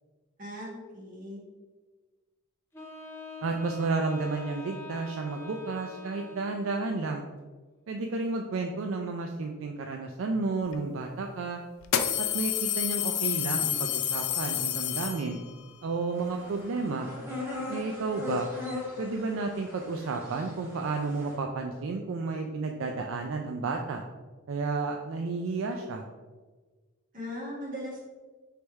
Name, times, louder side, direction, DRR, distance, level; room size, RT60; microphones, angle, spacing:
voice 1, 0.4-1.4 27.1-28.0, equal, 40° right, -5 dB, 1.4 m, -39 dB
Wind instrument woodwind instrument, 2.7-6.9, left 3 dB, 10° left, 0.6 m, -44 dB
voice 2, 3.4-7.2 7.9-11.6 12.2-15.4 15.8-17.1 17.7-18.5 19.0-24.0 24.5-26.0, right 3 dB, 65° right, 3 dB, 0.3 m, -32 dB
sound 1, 10.7-10.8 11.8-15.6, left 11 dB, 75° left, 0.4 m, -29 dB
sound 2, 16.1-21.4, left 3 dB, 10° right, 1.0 m, -39 dB
3.3 x 3.1 x 4.5 m, 1.3 s
head